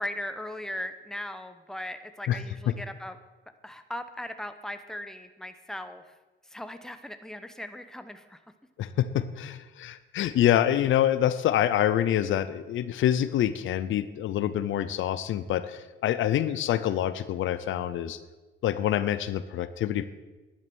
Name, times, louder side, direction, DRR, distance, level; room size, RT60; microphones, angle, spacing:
voice 1, 0.0-3.2 3.6-6.0 6.5-8.4, left 1 dB, 5° left, 9 dB, 1.1 m, -38 dB
voice 2, 8.8-18.2 18.6-20.1, left 11 dB, 75° left, 14 dB, 0.8 m, -26 dB
11.5 x 11.0 x 6.3 m, 1.2 s
cardioid pair, 90°, 20 cm